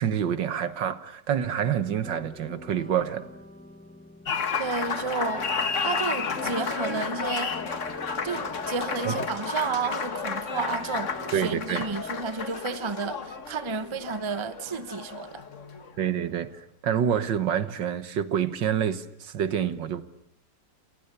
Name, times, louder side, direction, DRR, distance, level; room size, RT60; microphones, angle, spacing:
voice 1, 0.0-3.3 9.0-9.2 11.3-11.8 16.0-20.0, right 9 dB, 75° right, 2.0 m, -27 dB
sound 1, 2.0-12.2, left 1 dB, 5° left, 0.9 m, -46 dB
Applause, 4.3-16.0, left 5 dB, 45° left, 1.7 m, -32 dB
voice 2, 4.6-5.5 5.8-7.6 8.2-15.4, right 5 dB, 20° right, 0.8 m, -32 dB
28.5 x 28.5 x 6.8 m
omnidirectional pair, 2.0 m